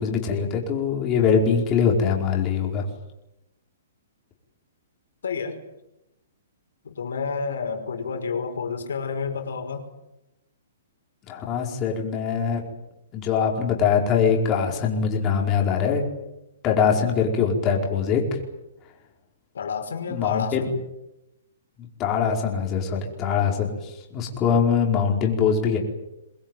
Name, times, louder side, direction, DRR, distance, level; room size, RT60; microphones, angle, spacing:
voice 1, 0.0-2.9 11.3-12.6 13.1-16.0 16.6-18.2 20.1-20.7 21.8-25.8, left 6 dB, 25° left, 0 dB, 5.0 m, -23 dB
voice 2, 5.2-5.6 6.8-9.9 19.5-20.7, left 5 dB, 85° left, 5 dB, 5.5 m, -30 dB
24.0 x 20.5 x 9.4 m, 0.91 s
hypercardioid pair, 160°, 0 cm